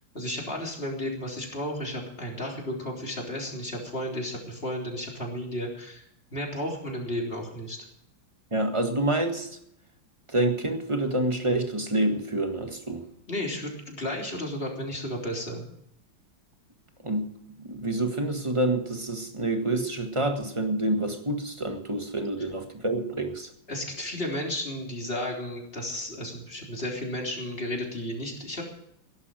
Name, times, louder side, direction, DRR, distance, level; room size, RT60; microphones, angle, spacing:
voice 1, 0.1-6.0 6.3-7.8 13.3-15.7 23.7-28.6, left 1 dB, 25° left, 0 dB, 3.8 m, -33 dB
voice 2, 8.5-9.5 10.3-13.1 17.0-17.2 17.6-23.5, right 1 dB, 15° right, 5 dB, 1.5 m, -27 dB
17.0 x 11.0 x 6.2 m, 0.74 s
omnidirectional pair, 2.3 m